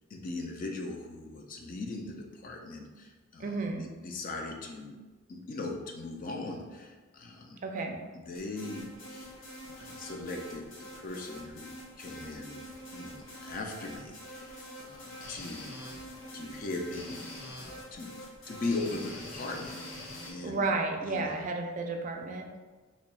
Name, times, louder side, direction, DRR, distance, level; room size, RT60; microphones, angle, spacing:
voice 1, 0.1-5.0 5.3-7.6 7.9-8.0 8.2-9.3 9.8-11.7 12.0-12.6 12.9-15.8 16.3-18.2 18.5-20.7 21.1-21.4, left 2 dB, 40° left, 1 dB, 0.4 m, -39 dB
voice 2, 3.4-3.9 7.6-8.0 20.4-22.5, right 3 dB, 40° right, 3 dB, 0.3 m, -32 dB
sound 1, 8.4-20.3, left 1 dB, 70° left, 0.8 m, -45 dB
3.0 x 2.3 x 4.0 m, 1.3 s
head